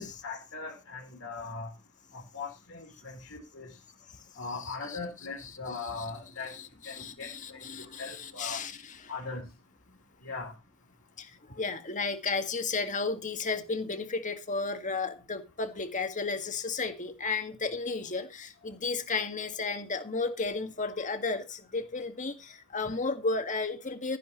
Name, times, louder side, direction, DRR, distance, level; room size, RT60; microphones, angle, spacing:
voice 1, 0.0-1.7 2.1-3.7 4.4-6.5 6.8-7.6 8.0-8.6 9.1-9.4 10.2-10.5, left 4 dB, 60° left, -1 dB, 4.0 m, -39 dB
voice 2, 4.6-5.0 5.4-6.1 6.4-9.1 11.2-24.2, left 4 dB, 35° left, 7 dB, 1.8 m, -34 dB
14.5 x 11.0 x 3.1 m, 0.27 s
head